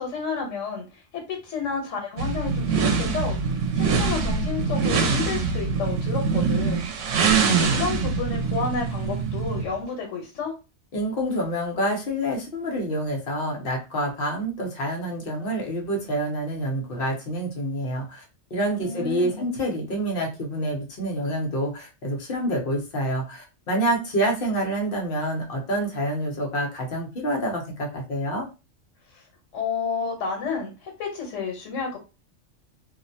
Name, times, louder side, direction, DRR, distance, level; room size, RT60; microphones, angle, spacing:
voice 1, 0.0-6.8 7.4-10.5 18.8-19.4 29.5-32.0, left 5 dB, 85° left, 1.2 m, -31 dB
sound 1, 2.2-9.7, right 5 dB, 80° right, 0.9 m, -24 dB
voice 2, 10.9-18.2 18.5-28.5, right 1 dB, 50° left, 1.0 m, -27 dB
2.5 x 2.1 x 2.6 m
omnidirectional pair, 1.3 m